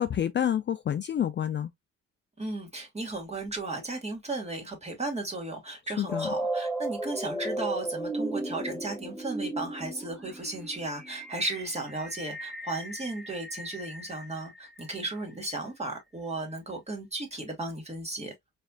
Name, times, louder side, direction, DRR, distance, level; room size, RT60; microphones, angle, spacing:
voice 1, 0.0-1.7 6.0-6.3, left 10 dB, 40° left, 0.4 m, -28 dB
voice 2, 2.4-18.3, right 2 dB, 20° right, 2.3 m, -35 dB
sound 1, 6.1-15.0, right 1 dB, ahead, 0.7 m, -35 dB
4.8 x 3.4 x 2.3 m
cardioid pair, 90°, 30 cm